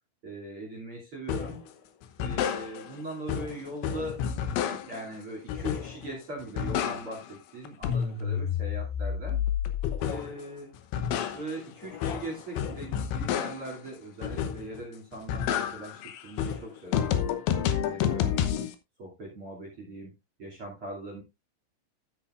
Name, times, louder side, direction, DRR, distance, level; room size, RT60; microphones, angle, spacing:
voice 1, 0.2-1.6 2.2-9.4 10.0-10.8 11.3-17.2 17.6-18.5 19.0-20.1 20.4-21.2, right 1 dB, 35° right, 0 dB, 2.7 m, -40 dB
sound 1, 1.3-1.6 2.0-3.0 3.3-5.1 5.5-6.1 6.4-7.4 7.7-10.4 10.8-13.8 14.2-14.8 15.1-18.7, left 9 dB, 75° left, 3.0 m, -30 dB
13.0 x 8.3 x 2.5 m, 0.22 s
omnidirectional pair, 5.8 m